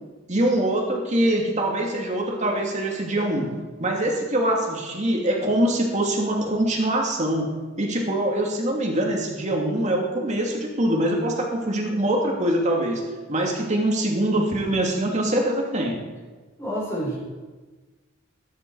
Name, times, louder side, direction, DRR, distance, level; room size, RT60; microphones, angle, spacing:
voice 1, 0.3-3.5 3.8-7.5 7.8-13.0 13.3-16.0, right 1 dB, 35° right, 0 dB, 2.7 m, -23 dB
voice 2, 16.6-17.2, equal, 15° left, -6 dB, 5.3 m, -28 dB
21.0 x 11.0 x 4.9 m, 1.4 s
head